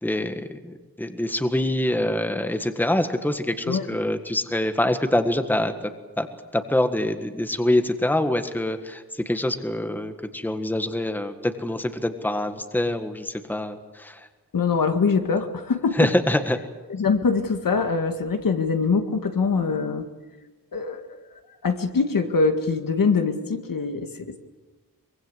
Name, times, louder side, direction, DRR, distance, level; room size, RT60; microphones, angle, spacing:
voice 1, 0.0-6.3 6.5-14.3 15.9-16.6, left 1 dB, 5° left, 7 dB, 1.7 m, -25 dB
voice 2, 14.5-16.1 16.9-20.1 20.7-21.2 21.6-24.4, left 4 dB, 65° left, 6 dB, 2.0 m, -23 dB
24.0 x 22.5 x 8.0 m, 1.2 s
wide cardioid pair, 110°, 36 cm